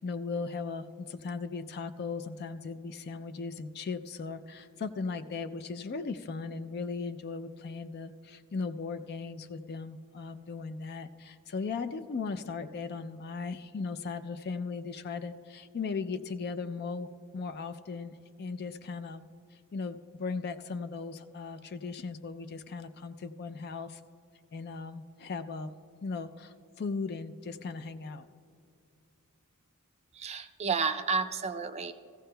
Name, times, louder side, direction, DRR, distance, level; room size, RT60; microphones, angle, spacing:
voice 1, 0.0-17.1 17.3-19.2 19.7-24.0 24.5-25.7 26.0-28.3, left 4 dB, 45° left, 10 dB, 0.4 m, -37 dB
voice 2, 30.1-31.9, right 5 dB, 30° right, 8 dB, 0.4 m, -31 dB
17.0 x 15.0 x 2.2 m, 2.3 s
head